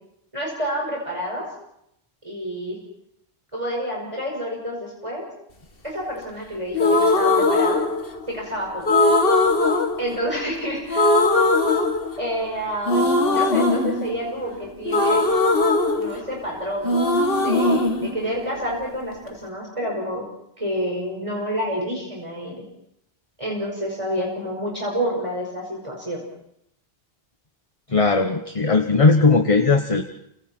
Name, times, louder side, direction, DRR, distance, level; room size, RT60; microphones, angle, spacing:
voice 1, 0.3-1.5 2.2-2.8 3.5-5.3 5.8-7.8 8.3-9.1 10.0-11.1 12.2-15.2 15.9-17.1 17.4-20.3 20.6-22.6 23.4-26.2 28.6-28.8, equal, 30° right, -2 dB, 5.5 m, -29 dB
sound 1, 6.7-8.4 8.9-10.6 10.9-12.5 12.9-16.6 16.8-18.9, left 2 dB, 65° left, 1.9 m, -20 dB
voice 2, 27.9-30.0, left 3 dB, 35° left, 6 dB, 1.2 m, -18 dB
30.0 x 26.0 x 4.5 m, 0.77 s
omnidirectional pair, 1.0 m